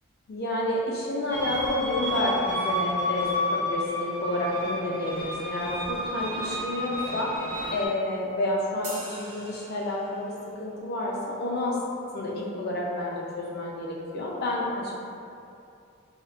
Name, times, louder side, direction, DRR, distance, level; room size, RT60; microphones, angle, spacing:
voice 1, 0.3-7.3 7.7-11.8 12.1-15.0, left 1 dB, 45° left, -3 dB, 0.3 m, -29 dB
sound 1, 1.3-7.9, left 1 dB, 35° right, 0.3 m, -31 dB
sound 2, 8.8-10.5, right 2 dB, 85° right, 0.6 m, -42 dB
2.5 x 2.1 x 2.4 m, 2.6 s
head